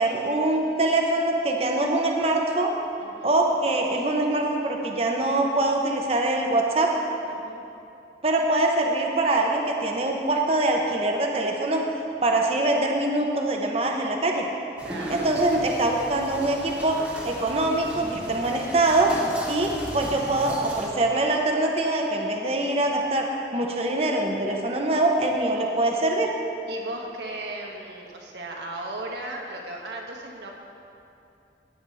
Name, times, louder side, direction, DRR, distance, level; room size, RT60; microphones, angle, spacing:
voice 1, 0.0-2.7 3.2-6.9 8.2-11.8 12.2-14.5 15.1-19.1 19.5-23.3 23.5-26.3, right 2 dB, 35° right, 1 dB, 0.8 m, -23 dB
voice 2, 3.0-3.4 7.3-7.6 14.8-15.3 26.7-30.5, right 2 dB, 75° right, -1 dB, 1.4 m, -36 dB
sound 1, 14.8-20.9, equal, 5° right, 1.3 m, -37 dB
15.0 x 9.1 x 3.4 m, 2.7 s
head